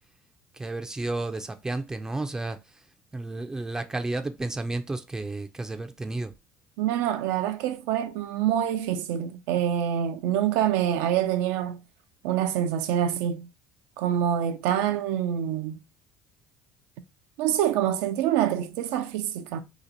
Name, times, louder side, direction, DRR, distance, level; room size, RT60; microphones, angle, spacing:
voice 1, 0.6-2.6 3.1-6.3, right 2 dB, 15° right, 0.4 m, -32 dB
voice 2, 6.8-11.8 12.2-13.5 14.0-15.8 17.4-19.6, right 10 dB, 80° right, 0.5 m, -26 dB
2.9 x 2.4 x 3.9 m
supercardioid pair, 90°, 4 cm